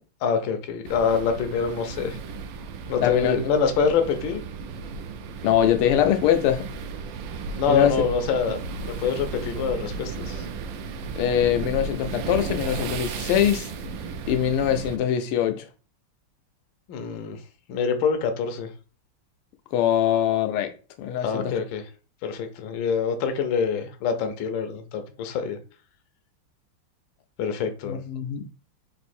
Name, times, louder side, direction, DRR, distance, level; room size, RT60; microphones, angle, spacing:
voice 1, 0.2-2.2 2.9-4.4 7.6-10.5 16.9-17.4 17.7-18.7 21.2-21.8 22.2-25.6 27.4-28.0, left 6 dB, 70° left, 1.3 m, -25 dB
sound 1, 0.8-15.0, right 4 dB, 75° right, 1.1 m, -34 dB
voice 2, 3.0-3.4 5.4-6.6 7.7-7.9 11.2-13.7 14.3-15.6 19.7-20.7 21.0-21.5 27.8-28.4, left 10 dB, 90° left, 1.6 m, -22 dB
3.9 x 2.7 x 4.2 m
omnidirectional pair, 2.4 m